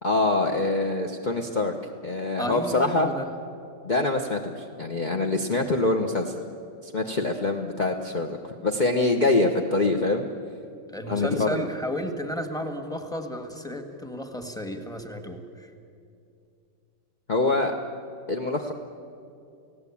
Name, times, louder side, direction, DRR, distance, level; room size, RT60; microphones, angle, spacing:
voice 1, 0.0-1.8 2.0-3.1 3.8-6.3 6.8-10.3 11.1-11.7 17.3-17.7 18.3-18.7, left 2 dB, 35° left, 3 dB, 0.7 m, -24 dB
voice 2, 2.4-3.3 10.9-15.7, equal, ahead, 5 dB, 1.5 m, -33 dB
30.0 x 17.0 x 8.6 m, 2.5 s
omnidirectional pair, 2.3 m